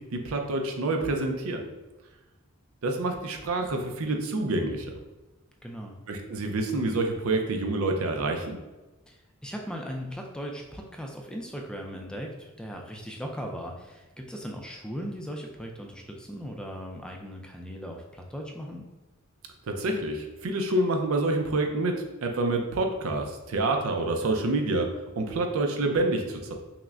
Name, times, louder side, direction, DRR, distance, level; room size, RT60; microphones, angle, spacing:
voice 1, 0.0-1.6 2.8-4.9 6.1-8.6 19.7-24.9 25.2-26.5, right 2 dB, 85° right, 4 dB, 0.5 m, -27 dB
voice 2, 5.6-6.0 9.1-18.8, equal, 5° left, 1 dB, 0.3 m, -38 dB
5.7 x 2.1 x 2.4 m, 1.1 s
head